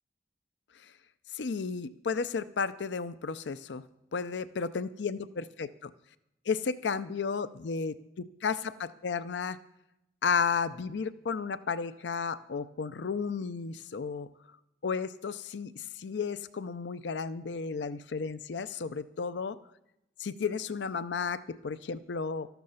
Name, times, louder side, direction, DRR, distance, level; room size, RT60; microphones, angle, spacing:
voice 1, 1.3-3.8 4.1-5.9 6.5-9.6 10.2-14.3 14.8-19.6 20.2-22.5, left 5 dB, 75° left, 14 dB, 0.5 m, -33 dB
13.5 x 13.0 x 5.6 m, 0.85 s
head